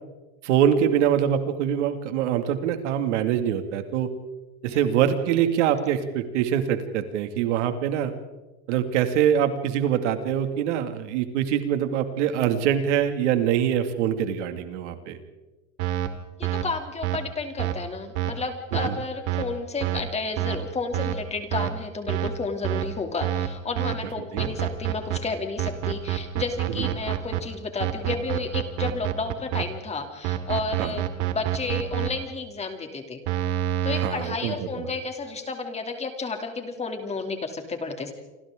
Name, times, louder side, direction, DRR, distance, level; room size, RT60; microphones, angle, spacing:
voice 1, 0.4-4.1 4.6-8.1 8.7-15.2 24.3-24.5 30.8-30.9 34.0-34.8, right 9 dB, 90° right, 7 dB, 2.4 m, -24 dB
sound 1, 15.8-16.1 16.4-16.6 17.0-17.2 17.6-17.7 18.2-18.3 18.7-18.9 19.3-19.4 19.8-20.0 20.4-20.6 20.9-21.1 21.5-21.7 22.1-22.3 22.6-22.9 23.2-23.5 23.8-23.9 24.4-25.2 25.6-27.4 27.8-29.6 30.2-32.1 33.3-34.1, right 13 dB, 65° right, 2.5 m, -26 dB
voice 2, 16.4-33.2 33.8-38.1, left 4 dB, 20° left, 5 dB, 2.9 m, -32 dB
28.0 x 26.0 x 3.8 m, 1.1 s
supercardioid pair, 145°, 35 cm